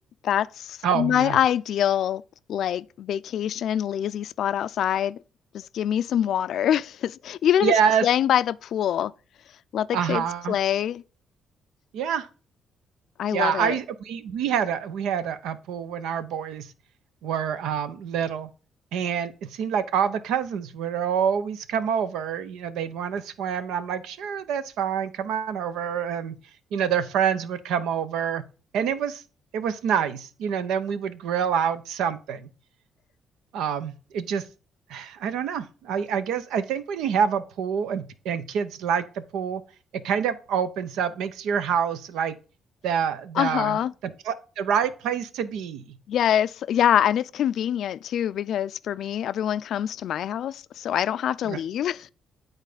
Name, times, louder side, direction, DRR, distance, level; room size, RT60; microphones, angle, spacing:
voice 1, 0.2-2.2 2.5-5.2 5.5-7.7 8.0-9.1 9.7-11.0 13.2-13.7 43.4-43.9 46.1-52.1, left 10 dB, 70° left, 0.3 m, -25 dB
voice 2, 0.8-1.4 7.6-8.1 9.9-10.6 11.9-12.3 13.3-16.7 17.2-18.5 18.9-26.4 26.7-28.4 28.7-29.2 29.5-32.5 33.5-34.4 34.9-39.6 39.9-42.4 42.8-46.0 51.4-51.6, right 8 dB, 85° right, 0.8 m, -27 dB
9.1 x 4.0 x 5.0 m
cardioid pair, 90°, 0 cm